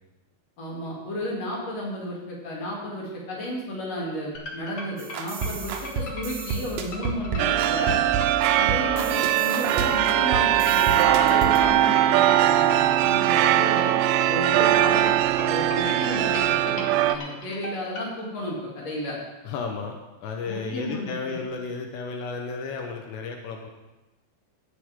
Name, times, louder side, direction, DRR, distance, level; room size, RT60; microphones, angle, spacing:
voice 1, 0.6-8.0 8.6-13.9 14.3-19.2 20.5-21.4, equal, 40° left, -4 dB, 3.6 m, -33 dB
sound 1, 4.3-18.1, left 2 dB, 60° left, 1.5 m, -38 dB
sound 2, 5.0-11.7, right 5 dB, 70° right, 2.2 m, -32 dB
sound 3, 7.4-17.2, right 12 dB, 85° right, 2.8 m, -21 dB
voice 2, 19.4-23.7, left 4 dB, 85° left, 3 dB, 3.2 m, -33 dB
18.5 x 8.2 x 3.7 m, 1.1 s
omnidirectional pair, 4.9 m